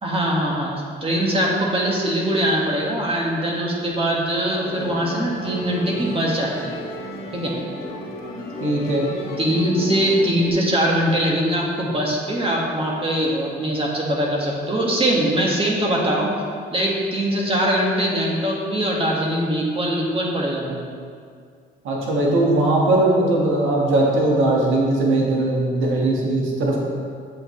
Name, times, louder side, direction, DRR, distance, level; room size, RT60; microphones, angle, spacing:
voice 1, 0.0-6.7 7.3-7.5 9.0-16.3 16.7-20.9, right 1 dB, 30° right, -2 dB, 1.7 m, -22 dB
Musical instrument, 4.6-10.5, left 1 dB, 45° left, 1.9 m, -34 dB
voice 2, 8.6-9.0 21.8-26.8, right 2 dB, 85° right, -3 dB, 1.6 m, -19 dB
8.0 x 7.8 x 3.2 m, 2.1 s
cardioid pair, 90°, 20 cm